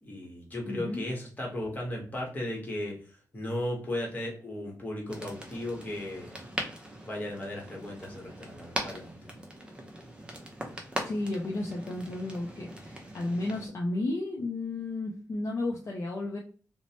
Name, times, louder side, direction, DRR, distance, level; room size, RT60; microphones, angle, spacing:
voice 1, 0.0-3.0 3.3-6.4 7.0-9.4, left 1 dB, 25° left, -1 dB, 1.0 m, -36 dB
voice 2, 0.6-1.0 11.0-16.4, left 2 dB, 45° left, -1 dB, 0.4 m, -33 dB
sound 1, 5.1-13.7, right 1 dB, 15° right, 0.5 m, -40 dB
3.0 x 2.1 x 2.7 m, 0.42 s
wide cardioid pair, 160°, 7 cm